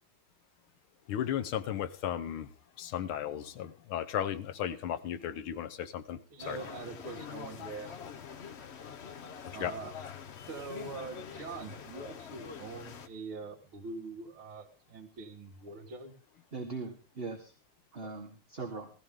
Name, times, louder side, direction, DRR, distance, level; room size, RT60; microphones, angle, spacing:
voice 1, 1.1-6.2 6.5-6.6 9.6-9.7, left 10 dB, 85° left, 11 dB, 1.8 m, -35 dB
voice 2, 6.3-8.0 9.5-9.9 10.5-16.1, right 4 dB, 75° right, -4 dB, 2.6 m, -43 dB
sound 1, 6.4-13.1, left 7 dB, 55° left, 0.7 m, -45 dB
voice 3, 16.5-17.5 17.9-18.9, right 4 dB, 30° right, 3 dB, 1.5 m, -40 dB
16.5 x 14.5 x 3.8 m, 0.37 s
omnidirectional pair, 2.3 m